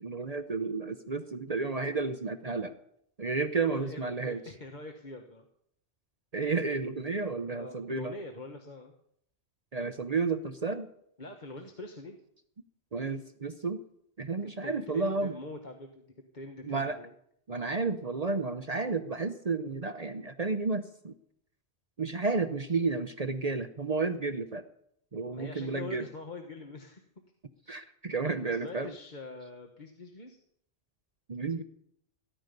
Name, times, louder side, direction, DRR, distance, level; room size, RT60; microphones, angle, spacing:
voice 1, 0.0-2.7 3.2-4.4 6.3-8.1 9.7-10.9 12.9-13.8 14.2-15.3 16.6-17.0 17.5-21.1 22.0-24.6 25.1-26.1 27.7-28.9 31.3-31.6, right 4 dB, 40° right, 10 dB, 0.8 m, -32 dB
voice 2, 3.7-5.4 7.5-8.9 11.2-12.2 14.4-16.1 16.3-17.1 25.3-27.0 27.7-27.8 28.4-30.4, left 2 dB, 45° left, 4 dB, 1.5 m, -44 dB
20.0 x 11.0 x 5.3 m, 0.72 s
omnidirectional pair, 1.1 m